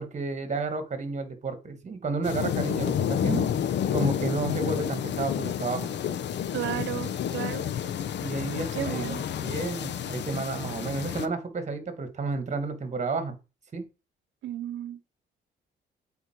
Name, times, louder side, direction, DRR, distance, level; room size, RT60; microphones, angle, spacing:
voice 1, 0.0-3.5 3.9-5.9 6.7-6.8 8.2-13.4 13.7-13.8, right 4 dB, 35° right, 1.7 m, -31 dB
sound 1, 2.2-11.3, left 9 dB, 60° left, 0.8 m, -30 dB
voice 2, 6.5-7.6 8.7-9.2 14.4-15.0, right 12 dB, 70° right, 0.7 m, -33 dB
8.2 x 4.3 x 4.5 m
cardioid pair, 90°, 20 cm